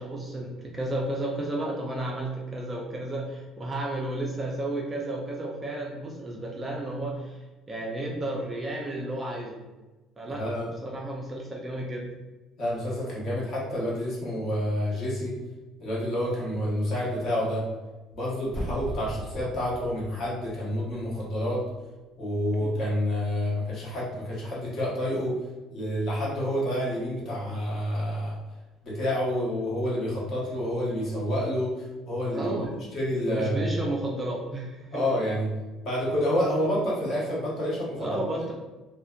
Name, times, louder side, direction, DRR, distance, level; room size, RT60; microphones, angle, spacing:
voice 1, 0.0-7.4 7.7-9.6 10.2-12.1 22.6-22.8 32.3-32.7 33.2-35.0 38.0-38.5, right 1 dB, 20° right, -1 dB, 0.3 m, -32 dB
voice 2, 10.3-10.7 12.6-15.3 15.8-17.6 18.1-21.6 22.2-25.4 25.7-28.4 28.8-32.5 32.9-33.7 34.9-35.5 35.8-38.1, equal, 45° left, -6 dB, 0.9 m, -28 dB
sound 1, 18.4-21.4 21.7-21.8, equal, ahead, 0.8 m, -38 dB
2.6 x 2.1 x 2.2 m, 1.1 s
cardioid pair, 160°, 0 cm